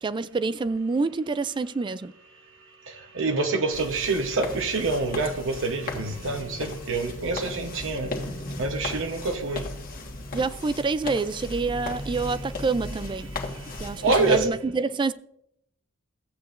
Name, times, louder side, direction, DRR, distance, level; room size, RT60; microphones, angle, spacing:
voice 1, 0.0-2.1 10.3-13.3 13.8-15.1, right 4 dB, 20° right, 0.3 m, -27 dB
voice 2, 3.1-8.1 8.6-9.6 14.0-14.5, right 3 dB, 65° right, 0.9 m, -26 dB
sound 1, 3.7-14.5, left 2 dB, 40° left, 1.4 m, -36 dB
14.5 x 8.5 x 2.5 m
head